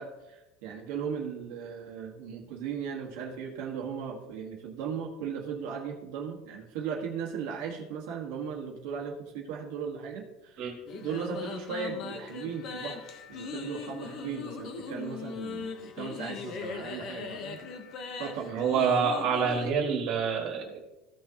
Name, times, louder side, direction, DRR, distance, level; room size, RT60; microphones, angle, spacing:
voice 1, 0.0-10.6 10.9-17.6 18.2-18.7, right 6 dB, 60° right, 0 dB, 1.5 m, -37 dB
sound 1, 10.9-19.7, left 5 dB, 35° left, 0.9 m, -40 dB
voice 2, 18.5-20.9, right 6 dB, 45° right, 0 dB, 2.0 m, -27 dB
15.0 x 6.2 x 2.9 m, 0.99 s
cardioid pair, 170°, 0 cm